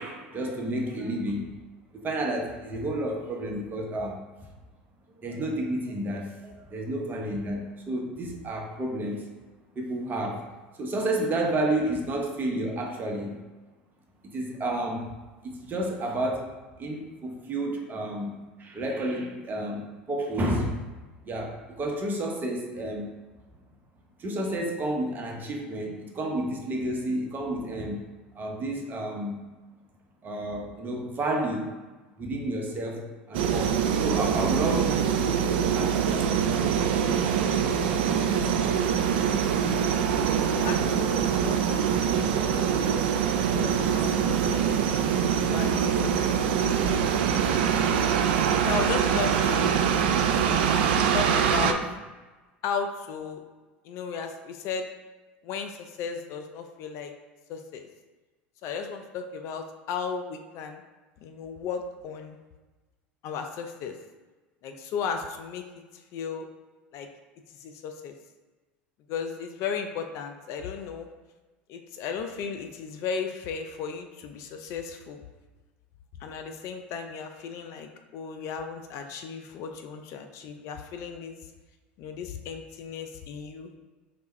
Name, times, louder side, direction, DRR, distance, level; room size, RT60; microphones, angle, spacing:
voice 1, 0.0-1.4 1.9-4.2 5.2-9.2 9.7-10.4 10.8-13.4 14.3-15.1 15.4-16.5 16.8-20.8 21.2-23.1 24.2-28.0 28.3-29.4 30.2-31.7 32.2-36.3, right 1 dB, 30° right, 1 dB, 0.9 m, -31 dB
sound 1, 33.3-51.7, right 7 dB, 70° right, 0.4 m, -24 dB
voice 2, 38.3-38.8 40.5-41.6 41.9-42.2 42.5-46.1 46.7-47.7 48.6-49.8 51.0-51.8 52.6-53.4 53.8-54.9 55.4-57.1 57.5-57.9 58.6-60.8 61.2-62.4 63.2-63.9 64.6-65.6 65.9-66.5 66.9-67.1 67.6-68.1 69.1-71.1 71.7-75.2 76.2-81.3 82.0-83.7, left 6 dB, 55° left, 5 dB, 0.5 m, -35 dB
4.2 x 3.4 x 3.2 m, 1.2 s
hypercardioid pair, 80°, 6 cm